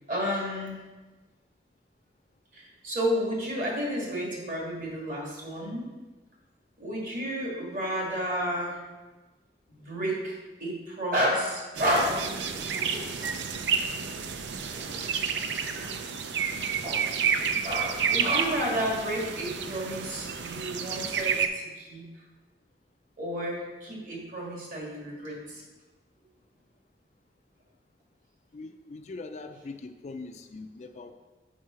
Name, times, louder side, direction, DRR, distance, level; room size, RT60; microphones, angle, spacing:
voice 1, 0.1-0.8 2.5-5.9 6.8-8.8 9.7-13.3 13.6-13.7 14.7-16.1 16.4-22.1 23.2-25.6, equal, 50° right, -3 dB, 2.0 m, -32 dB
sound 1, 11.8-21.5, right 6 dB, 80° right, 0.5 m, -30 dB
voice 2, 28.5-31.1, left 3 dB, 40° left, 7 dB, 0.3 m, -41 dB
6.2 x 4.7 x 5.6 m, 1.2 s
head